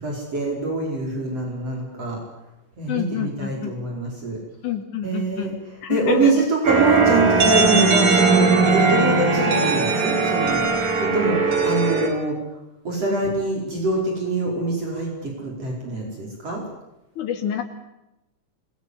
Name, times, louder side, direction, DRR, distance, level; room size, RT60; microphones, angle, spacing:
voice 1, 0.0-2.2 2.8-4.4 5.0-5.5 5.9-10.7 11.0-12.4 12.8-16.6, right 2 dB, 50° right, 0 dB, 6.0 m, -24 dB
voice 2, 2.9-3.7 4.6-5.6 5.8-6.5 11.3-11.6 13.0-13.1 17.2-17.6, left 8 dB, 75° left, 5 dB, 4.0 m, -28 dB
sound 1, 6.6-12.1, right 4 dB, 70° right, 4.8 m, -19 dB
26.0 x 21.0 x 8.4 m, 0.93 s
omnidirectional pair, 3.6 m